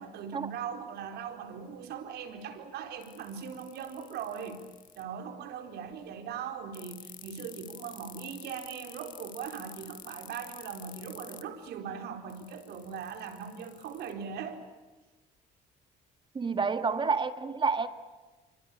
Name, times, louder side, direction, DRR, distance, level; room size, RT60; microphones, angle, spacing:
voice 1, 0.0-4.6 5.0-14.6, right 7 dB, 75° right, 4.3 m, -40 dB
sound 1, 3.0-5.0 6.7-11.4 12.3-14.1, left 9 dB, 50° left, 2.2 m, -48 dB
voice 2, 16.3-17.9, right 5 dB, 30° right, 2.1 m, -29 dB
28.0 x 25.0 x 8.5 m
cardioid pair, 110°, 17 cm